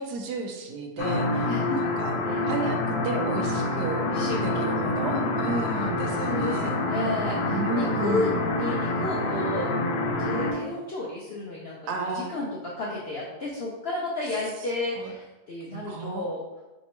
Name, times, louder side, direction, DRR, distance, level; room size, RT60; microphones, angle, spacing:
voice 1, 0.0-1.5 1.8-2.1 2.5-4.0 4.4-6.8 7.4-8.5 11.9-12.3 15.0-15.1 15.7-16.3, right 4 dB, 80° right, 4 dB, 1.1 m, -32 dB
sound 1, 1.0-10.5, left 2 dB, 85° left, 1.2 m, -27 dB
voice 2, 1.4-1.9 2.2-2.5 4.1-4.7 5.0-5.4 6.2-9.7 10.2-16.4, left 2 dB, 65° left, -5 dB, 0.6 m, -32 dB
3.4 x 2.8 x 4.3 m, 1.1 s
omnidirectional pair, 1.7 m